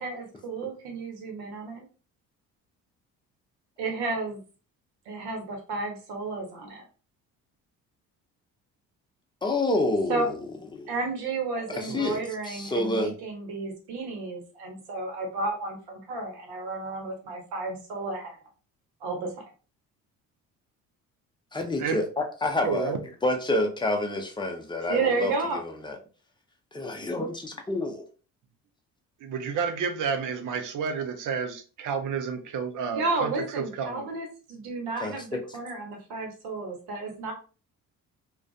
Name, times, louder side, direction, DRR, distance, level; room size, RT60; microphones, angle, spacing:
voice 1, 0.0-1.8 3.8-4.4 5.1-6.8 10.1-10.3 10.9-18.4 19.0-19.3 24.9-25.6 32.9-37.3, right 3 dB, 65° right, 1.0 m, -32 dB
voice 2, 9.4-10.4 10.7-10.9 11.7-12.2 12.4-13.2 21.5-22.9 23.2-26.0 26.7-28.0 35.0-35.1, left 2 dB, 10° left, 0.6 m, -28 dB
voice 3, 11.9-12.2 21.8-22.0 22.6-23.0 29.2-34.2, right 6 dB, 45° right, 0.6 m, -31 dB
2.4 x 2.3 x 2.3 m
hypercardioid pair, 50°, 42 cm